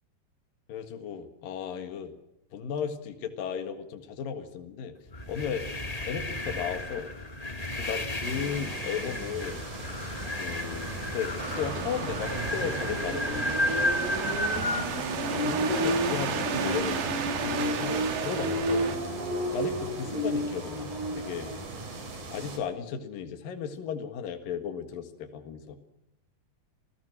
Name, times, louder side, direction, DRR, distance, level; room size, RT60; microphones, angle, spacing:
voice 1, 0.7-2.1 2.5-5.0 5.3-5.7 6.0-7.1 7.8-9.6 10.4-11.3 11.6-13.5 15.3-17.0 17.4-18.9 19.5-20.9 21.1-21.5 22.3-25.8, left 7 dB, 75° left, 6 dB, 3.4 m, -35 dB
sound 1, 5.1-14.9, left 1 dB, 30° left, 0.6 m, -33 dB
sound 2, 8.2-22.6, equal, 55° right, 5.3 m, -33 dB
sound 3, 11.4-19.0, right 7 dB, 80° right, 4.0 m, -33 dB
29.0 x 18.0 x 6.2 m, 0.84 s
omnidirectional pair, 4.2 m